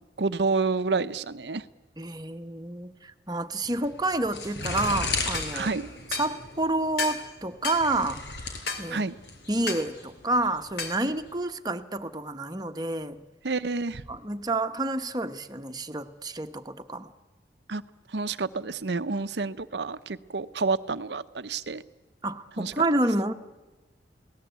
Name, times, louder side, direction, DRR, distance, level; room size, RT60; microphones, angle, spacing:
voice 1, 0.2-1.6 5.5-5.9 8.9-9.2 11.0-11.1 13.4-14.0 17.7-17.8 18.1-21.8 22.6-22.7, right 4 dB, 75° right, 13 dB, 0.8 m, -29 dB
voice 2, 2.0-5.7 6.1-8.2 8.8-9.0 9.5-13.2 14.1-17.1 22.2-23.3, right 2 dB, 25° right, 7 dB, 1.1 m, -29 dB
sound 1, 3.6-11.3, left 3 dB, 85° left, 5.0 m, -36 dB
sound 2, 5.3-5.5 6.1-6.3 7.0-7.2 7.6-7.9 8.7-8.9 9.7-9.9 10.8-11.0, left 4 dB, 70° left, 3.3 m, -32 dB
29.5 x 18.5 x 8.2 m, 1.2 s
head